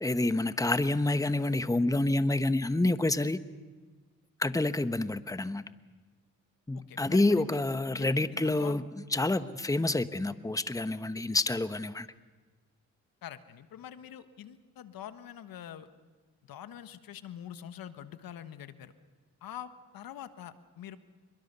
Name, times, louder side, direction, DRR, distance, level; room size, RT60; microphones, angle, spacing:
voice 1, 0.0-3.4 4.4-5.6 6.7-8.8 9.1-12.1, left 2 dB, 10° left, 11 dB, 1.2 m, -28 dB
voice 2, 6.7-8.8 9.8-9.9 13.2-15.9 16.5-18.9 19.4-21.0, left 10 dB, 75° left, 11 dB, 1.4 m, -45 dB
27.0 x 23.0 x 6.9 m, 1.3 s
supercardioid pair, 50°, 35 cm